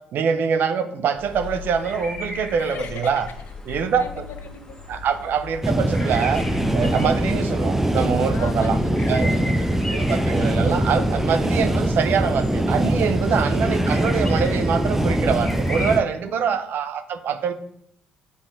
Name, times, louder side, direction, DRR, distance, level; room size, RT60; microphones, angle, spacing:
voice 1, 0.1-3.3 3.7-4.2 4.9-6.5 6.7-8.8 9.1-9.3 9.9-17.5, right 6 dB, 55° right, 9 dB, 0.7 m, -24 dB
sound 1, 1.2-16.0, left 2 dB, 15° left, 1.3 m, -37 dB
voice 2, 2.6-3.1 3.7-4.8 8.3-10.1 13.3-13.5 16.3-16.5, left 5 dB, 55° left, 7 dB, 1.0 m, -37 dB
sound 2, 5.6-16.0, right 1 dB, 10° right, 0.6 m, -22 dB
8.5 x 3.7 x 5.0 m, 0.71 s
figure-of-eight pair, 45°, 4 cm